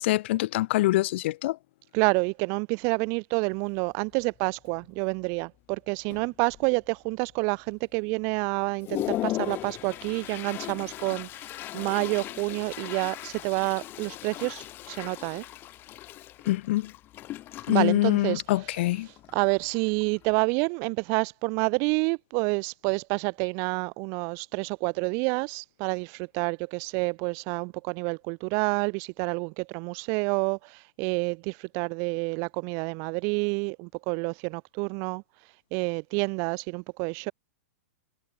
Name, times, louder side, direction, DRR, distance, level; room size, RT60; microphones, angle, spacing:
voice 1, 0.0-1.6 16.5-16.9 17.7-19.1, left 17 dB, 55° left, 0.4 m, -25 dB
voice 2, 1.9-15.4 17.7-18.4 19.0-37.3, right 35 dB, 40° right, 0.6 m, -28 dB
Toilet flush, 3.5-3.6 4.1-4.4 4.7-5.2 5.7-5.8 6.1-6.9 7.3-7.4 8.0-8.1 8.5-20.4, left 15 dB, 30° left, 0.8 m, -38 dB
hypercardioid pair, 135°, 8 cm